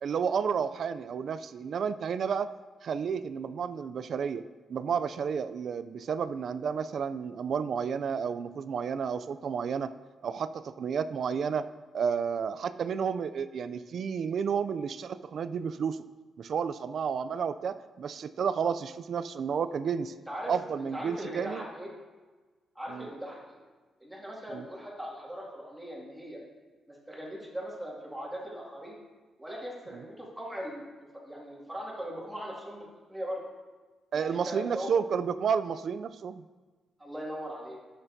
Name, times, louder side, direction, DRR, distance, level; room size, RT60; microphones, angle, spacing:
voice 1, 0.0-2.5 2.8-4.4 4.7-9.9 10.2-11.7 11.9-16.0 16.4-20.1 20.5-21.7 22.9-23.1 24.5-24.6 29.9-30.0 34.1-36.4, right 6 dB, 60° right, 13 dB, 0.3 m, -31 dB
voice 2, 20.3-21.9 22.7-23.6 24.0-26.4 26.9-29.0 29.4-33.4 34.1-34.9 37.0-37.8, equal, 5° right, -4 dB, 2.2 m, -39 dB
11.5 x 6.6 x 2.7 m, 1.3 s
cardioid pair, 115°, 0 cm